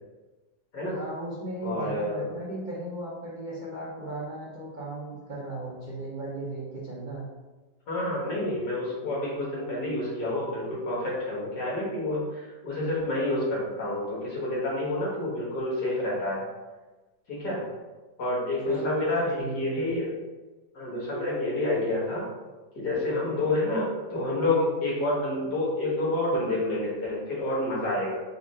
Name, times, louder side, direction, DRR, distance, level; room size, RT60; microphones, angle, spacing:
voice 1, 0.9-7.2 18.6-19.8, right 2 dB, 50° right, -7 dB, 0.6 m, -36 dB
voice 2, 1.6-2.3 7.9-16.4 17.3-17.6 18.2-20.1 20.7-22.3 22.8-28.2, left 1 dB, 60° left, -5 dB, 1.9 m, -28 dB
4.2 x 2.5 x 4.1 m, 1.2 s
omnidirectional pair, 2.0 m